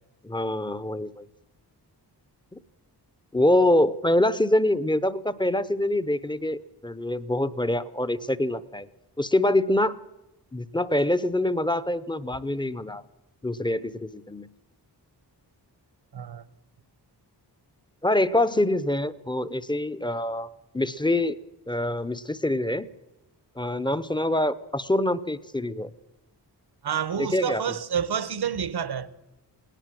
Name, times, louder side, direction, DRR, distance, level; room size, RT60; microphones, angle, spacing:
voice 1, 0.2-1.3 2.5-2.6 3.3-8.9 9.2-10.0 10.5-13.0 13.4-14.5 18.0-20.5 20.7-21.4 21.7-22.9 23.6-25.9 27.2-27.6, left 1 dB, 10° left, 0.8 m, -25 dB
voice 2, 16.1-16.4 26.8-29.1, right 8 dB, 70° right, 1.1 m, -28 dB
19.5 x 19.0 x 7.6 m
wide cardioid pair, 145°, 41 cm